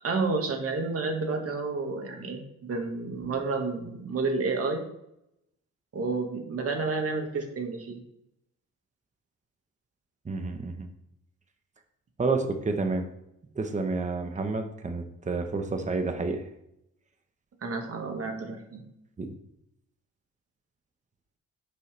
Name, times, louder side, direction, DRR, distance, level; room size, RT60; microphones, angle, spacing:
voice 1, 0.0-4.8 5.9-8.0 17.6-18.8, right 3 dB, 50° right, 4 dB, 1.9 m, -30 dB
voice 2, 10.3-10.9 12.2-13.1 13.6-16.4 19.2-19.3, right 3 dB, 25° right, 6 dB, 1.1 m, -29 dB
9.2 x 7.0 x 3.4 m, 0.82 s
cardioid pair, 90°, 30 cm